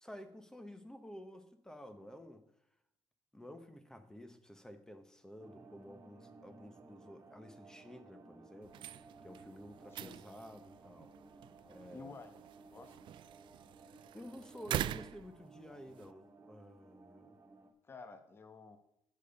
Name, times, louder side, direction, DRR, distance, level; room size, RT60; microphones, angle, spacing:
voice 1, 0.0-2.4 3.3-8.8 9.2-11.1 11.7-12.2 14.1-17.3, equal, 5° left, 9 dB, 1.1 m, -52 dB
sound 1, 5.4-17.7, right 3 dB, 35° right, 1.8 m, -58 dB
sound 2, 8.6-16.1, right 12 dB, 65° right, 0.3 m, -45 dB
voice 2, 11.9-13.0 17.8-18.8, left 4 dB, 25° left, 8 dB, 1.0 m, -52 dB
8.7 x 7.4 x 5.3 m, 0.78 s
cardioid pair, 115°, 9 cm